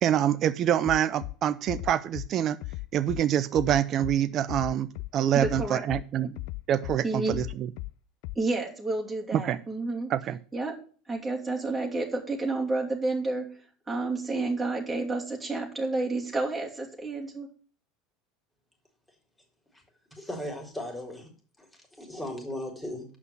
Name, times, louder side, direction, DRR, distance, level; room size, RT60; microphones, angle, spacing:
voice 1, 0.0-2.6 2.9-6.3 6.7-7.7 9.3-9.6 10.1-10.4, right 10 dB, 45° right, 13 dB, 0.6 m, -26 dB
Bass drum, 0.8-1.3 1.7-2.3 2.6-3.2 3.5-4.2 4.5-5.1 5.4-6.0 6.4-7.0 7.3-7.9 8.2-8.3, left 20 dB, 65° left, 0.3 m, -36 dB
voice 2, 5.3-5.8 6.2-6.3 7.0-7.4 8.3-10.1 10.5-10.8 11.1-13.5 13.9-17.5, right 2 dB, 10° right, -3 dB, 2.8 m, -30 dB
voice 3, 20.1-21.3 21.6-21.7 22.0-23.1, left 1 dB, 10° left, 2 dB, 3.8 m, -36 dB
7.9 x 5.7 x 7.1 m, 0.40 s
hypercardioid pair, 85°, 0 cm